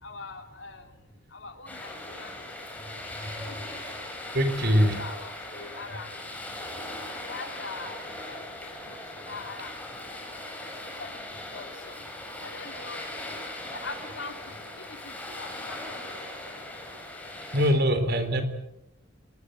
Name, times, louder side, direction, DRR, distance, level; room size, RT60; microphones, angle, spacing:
voice 1, 0.0-0.9 1.3-2.5 3.5-3.8 4.6-6.1 6.4-6.7 7.2-8.4 8.8-10.6 11.0-12.1 12.4-13.3 13.7-15.8, left 3 dB, 65° left, 5 dB, 3.6 m, -43 dB
sound 1, 1.7-17.7, left 1 dB, 10° left, 6.4 m, -39 dB
voice 2, 4.3-5.0 17.5-18.4, equal, 55° right, 9 dB, 4.0 m, -22 dB
26.5 x 20.5 x 8.1 m, 0.89 s
head